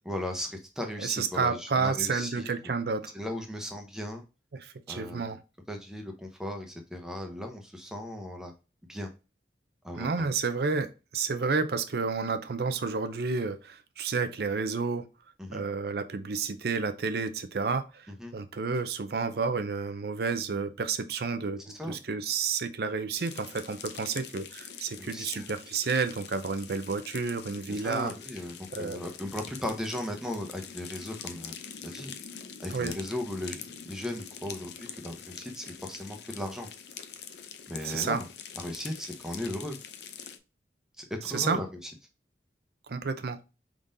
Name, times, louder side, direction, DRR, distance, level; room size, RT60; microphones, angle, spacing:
voice 1, 0.1-2.7 3.1-4.2 4.9-5.4 5.7-8.5 8.9-9.1 9.8-10.1 15.4-15.6 18.2-18.3 21.8-21.9 25.0-25.5 27.7-32.1 32.6-36.7 37.7-38.3 38.6-39.7 41.0-41.9, left 1 dB, 5° right, 3 dB, 0.8 m, -37 dB
voice 2, 1.0-3.1 4.5-5.4 9.9-15.0 15.5-28.1 28.7-29.0 32.7-32.9 37.8-38.2 41.2-41.6 42.9-43.4, right 4 dB, 60° right, 9 dB, 0.5 m, -30 dB
sound 1, 23.1-40.4, left 7 dB, 70° left, 0.6 m, -44 dB
4.9 x 3.7 x 2.6 m, 0.29 s
head